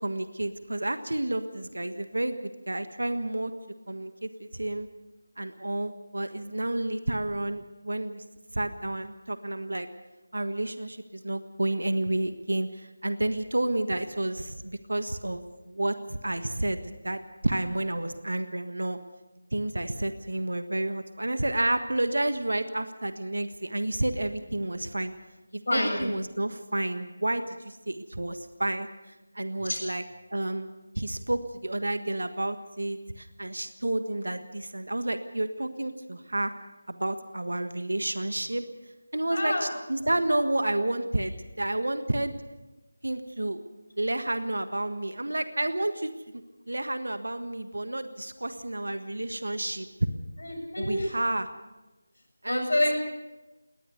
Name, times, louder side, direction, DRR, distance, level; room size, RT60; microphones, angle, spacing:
voice 1, 0.0-3.5 3.9-4.9 5.4-8.2 8.5-9.9 10.3-19.0 19.5-25.1 25.5-28.9 29.3-30.0 30.3-30.7 31.0-36.5 36.9-38.6 39.1-42.3 43.0-43.6 44.0-46.4 46.7-49.9 50.8-51.5 52.4-52.7, right 1 dB, 75° right, 9 dB, 1.5 m, -30 dB
voice 2, 25.7-26.0 29.6-29.8 39.3-39.7 50.4-51.1 52.5-52.9, left 1 dB, 65° left, 3 dB, 7.1 m, -27 dB
21.0 x 19.0 x 6.7 m, 1.1 s
figure-of-eight pair, 165°, 0 cm